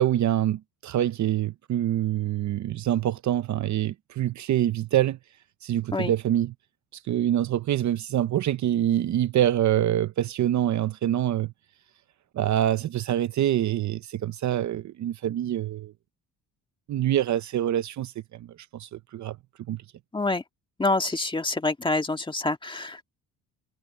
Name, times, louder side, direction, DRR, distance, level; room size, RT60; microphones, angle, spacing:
voice 1, 0.0-5.2 5.6-6.5 7.1-11.5 12.3-15.9 16.9-18.5 18.7-19.4 19.7-19.8, right 12 dB, 50° right, 0.7 m, -25 dB
voice 2, 20.8-23.0, left 2 dB, 15° left, 1.7 m, -26 dB
cardioid pair, 125°, 37 cm